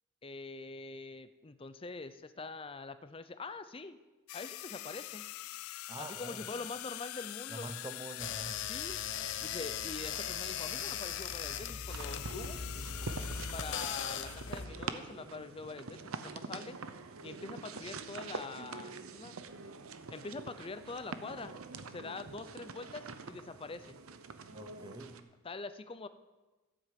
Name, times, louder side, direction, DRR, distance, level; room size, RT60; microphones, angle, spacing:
voice 1, 0.2-4.0 4.3-5.3 6.0-7.7 8.7-9.0 9.4-12.6 13.5-16.8 17.2-19.4 20.1-21.6 21.9-24.0 25.4-26.1, left 3 dB, 25° left, 12 dB, 0.5 m, -44 dB
sound 1, 4.3-14.7, left 16 dB, 80° left, 0.3 m, -44 dB
voice 2, 5.9-6.7 7.5-8.7 24.5-25.3, right 2 dB, 20° right, 10 dB, 0.6 m, -46 dB
sound 2, 8.2-14.9, left 7 dB, 55° left, 0.7 m, -39 dB
sound 3, 11.9-25.2, right 4 dB, 80° right, 0.8 m, -45 dB
12.5 x 7.8 x 7.5 m, 1.2 s
head